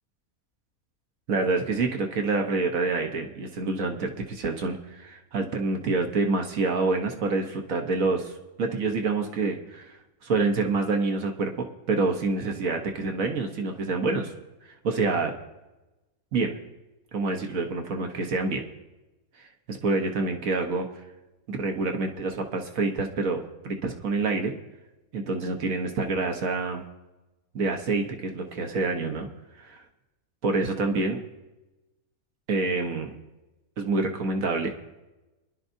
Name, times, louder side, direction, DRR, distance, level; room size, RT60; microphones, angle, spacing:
voice 1, 1.3-8.3 8.6-14.3 14.8-15.3 16.3-16.5 17.1-18.7 19.4-20.9 21.5-24.5 25.1-26.8 27.5-29.3 29.6-29.8 30.4-31.2 32.5-33.1 33.8-34.7, right 3 dB, 70° right, 4 dB, 1.4 m, -27 dB
23.5 x 11.0 x 2.7 m, 1.1 s
omnidirectional pair, 1.5 m